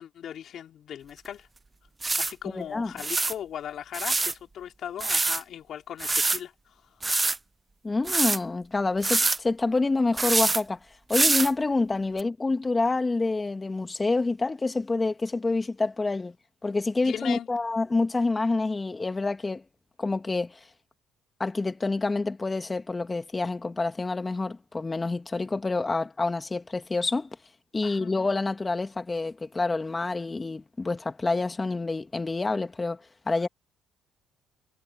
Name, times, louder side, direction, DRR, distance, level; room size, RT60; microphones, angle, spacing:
voice 1, 0.0-1.5 2.2-7.1 17.0-17.5 27.8-28.1 33.3-33.4, left 9 dB, 65° left, 3.9 m, -38 dB
sound 1, 1.2-1.3 2.0-2.3 3.0-3.3 3.9-4.3 5.0-5.4 6.0-6.4 7.0-7.4 8.1-8.4 9.0-9.4 10.2-10.6 11.1-11.5 12.2-12.3, right 3 dB, 20° right, 0.5 m, -25 dB
voice 2, 2.5-2.9 7.8-10.8 11.1-16.3 16.6-19.6 20.0-20.6 21.4-27.3 27.7-33.5, left 3 dB, 25° left, 2.4 m, -27 dB
supercardioid pair, 70°, 0 cm